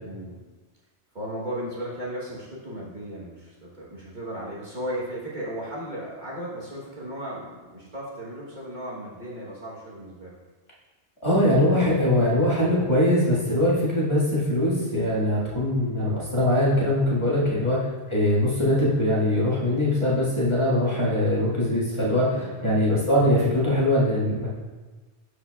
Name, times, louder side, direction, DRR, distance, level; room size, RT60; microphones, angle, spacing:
voice 1, 0.0-0.4 1.1-10.4 17.4-17.7 22.3-22.9, right 1 dB, 45° right, -6 dB, 1.3 m, -36 dB
voice 2, 11.2-24.5, left 1 dB, 25° left, -8 dB, 1.8 m, -22 dB
12.5 x 5.0 x 2.3 m, 1.3 s
omnidirectional pair, 1.2 m